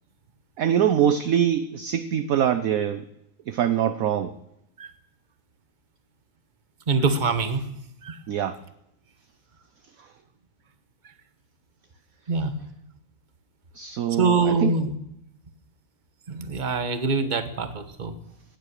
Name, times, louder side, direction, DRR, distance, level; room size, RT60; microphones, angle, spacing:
voice 1, 0.6-3.0 3.5-4.4 8.3-8.6 10.0-10.1 13.7-14.7, right 9 dB, 65° right, 12 dB, 0.9 m, -23 dB
voice 2, 6.9-7.7 8.0-8.2 12.3-12.5 14.2-14.9 16.3-18.1, right 4 dB, 30° right, 10 dB, 1.2 m, -24 dB
17.5 x 10.0 x 6.7 m, 0.80 s
omnidirectional pair, 2.1 m